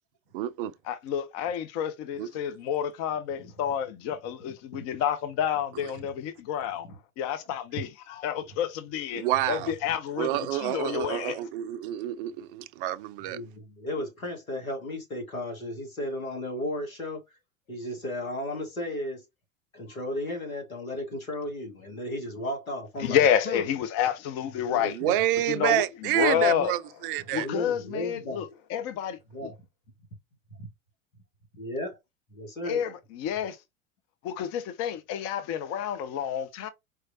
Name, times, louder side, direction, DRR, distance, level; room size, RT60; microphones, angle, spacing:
voice 1, 0.3-0.7 2.2-2.3 9.1-9.7 10.2-13.4 25.0-27.5, right 13 dB, 45° right, 0.4 m, -28 dB
voice 2, 0.8-6.9 7.2-11.4 23.0-25.0 25.5-26.7 27.3-29.5 32.6-33.6 34.2-36.7, left 9 dB, 35° left, 0.6 m, -29 dB
voice 3, 13.2-17.2 17.7-19.2 19.7-23.7 24.6-25.2 26.4-26.7 27.4-28.5 29.3-29.5 31.5-32.0 32.3-32.8, left 1 dB, 80° left, 2.1 m, -34 dB
4.6 x 3.1 x 2.8 m
figure-of-eight pair, 85°, 41 cm